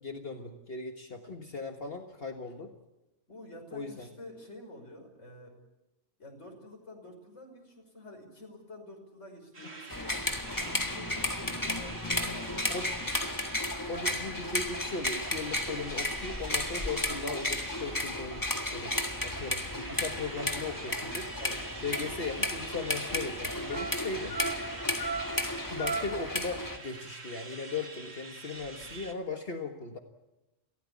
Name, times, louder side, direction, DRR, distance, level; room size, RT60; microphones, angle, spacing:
voice 1, 0.0-2.7 3.7-4.1 12.7-12.9 13.9-18.4 18.7-18.9 19.2-21.3 21.8-24.3 25.7-30.0, left 4 dB, 55° left, 4 dB, 1.8 m, -38 dB
voice 2, 3.3-5.5 6.2-10.2 10.6-13.2 21.4-21.6, left 1 dB, 80° left, 1 dB, 6.1 m, -49 dB
sound 1, 9.5-29.1, right 3 dB, 60° right, 2.2 m, -47 dB
sound 2, 9.9-26.8, left 1 dB, 15° left, 1.8 m, -33 dB
28.5 x 17.5 x 8.5 m, 0.98 s
omnidirectional pair, 1.2 m